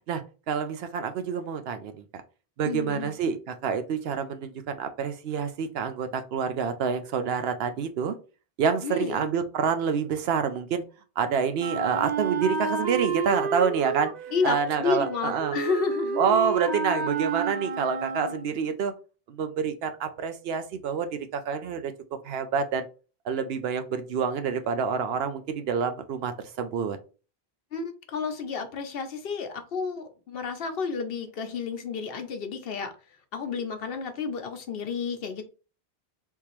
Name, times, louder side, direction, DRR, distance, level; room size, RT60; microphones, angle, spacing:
voice 1, 0.5-2.0 2.6-8.1 8.6-10.8 11.2-14.1 14.4-15.6 16.2-18.9 19.3-21.9 22.2-22.9 23.2-27.0, right 6 dB, 75° right, 9 dB, 0.8 m, -27 dB
voice 2, 2.6-3.1 8.8-9.3 14.3-16.2 27.7-32.9 33.3-35.4, left 5 dB, 70° left, 7 dB, 0.9 m, -31 dB
Wind instrument woodwind instrument, 11.6-18.6, right 6 dB, 55° right, 0.6 m, -30 dB
3.6 x 2.8 x 3.0 m, 0.34 s
omnidirectional pair, 1.1 m